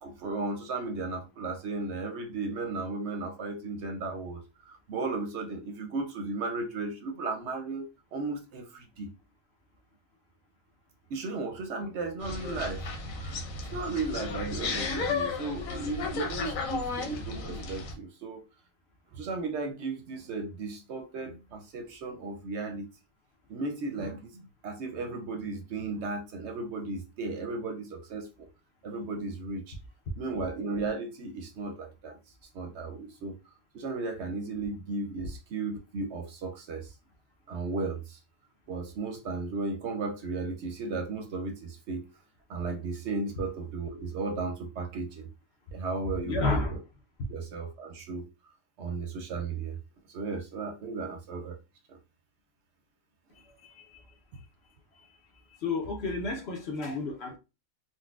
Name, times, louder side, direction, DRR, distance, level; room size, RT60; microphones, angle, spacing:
voice 1, 0.0-9.1 11.1-12.9 13.2-13.4 13.7-18.4 19.1-22.9 23.5-28.5 28.8-29.8 30.2-32.2 32.5-33.4 33.7-36.9 37.5-38.2 38.7-42.1 42.5-45.3 45.7-46.8 47.3-48.3 48.8-49.8 50.1-51.6 51.9-52.0 56.8-57.0, right 3 dB, 65° right, 0.8 m, -35 dB
sound 1, 12.2-17.9, left 3 dB, 85° left, 1.1 m, -34 dB
voice 2, 46.2-46.8 53.3-54.0 54.9-55.1 55.6-57.4, left 3 dB, 60° left, 0.9 m, -31 dB
3.9 x 2.1 x 2.3 m
omnidirectional pair, 1.4 m